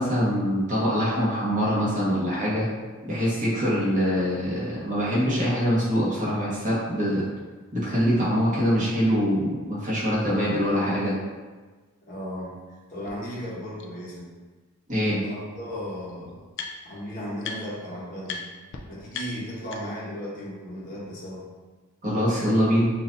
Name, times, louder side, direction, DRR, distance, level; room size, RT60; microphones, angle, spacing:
voice 1, 0.0-2.7 3.0-7.2 7.7-11.1 14.9-15.2 22.0-22.9, equal, 35° right, -7 dB, 1.3 m, -24 dB
voice 2, 12.0-12.6 12.9-14.3 15.0-16.5 16.8-18.4 18.9-21.5, equal, 40° left, -7 dB, 1.1 m, -35 dB
sound 1, 13.1-13.2 13.8-13.9 15.2-15.3 15.5-17.0 17.4-17.9 18.2-18.4 18.7-18.8 19.1-20.1, left 5 dB, 55° left, 0.4 m, -38 dB
5.9 x 2.6 x 2.6 m, 1.3 s
head